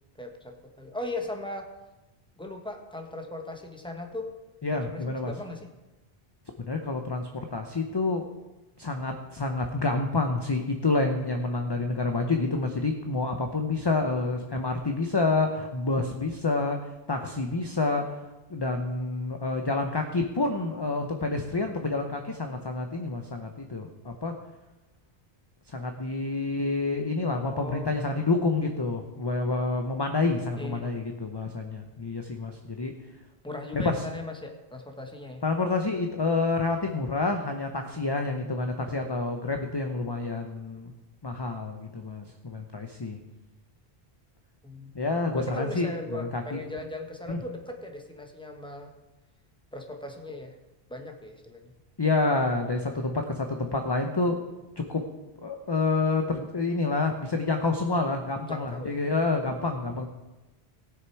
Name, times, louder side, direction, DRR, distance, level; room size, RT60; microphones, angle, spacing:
voice 1, 0.2-1.7 2.4-4.3 4.7-5.7 27.5-27.9 30.6-31.0 33.4-35.4 44.6-44.9 45.3-48.9 49.7-50.5 50.9-51.7 58.5-58.9, left 2 dB, 5° left, 3 dB, 1.2 m, -38 dB
voice 2, 4.6-5.3 6.6-8.3 8.8-18.2 18.5-24.3 25.7-32.9 33.7-34.0 35.4-40.9 41.2-43.2 44.9-46.6 47.3-47.4 52.0-54.4 54.8-55.1 55.4-60.1, left 3 dB, 25° left, 4 dB, 0.7 m, -28 dB
17.5 x 6.6 x 4.6 m, 1.0 s
omnidirectional pair, 1.1 m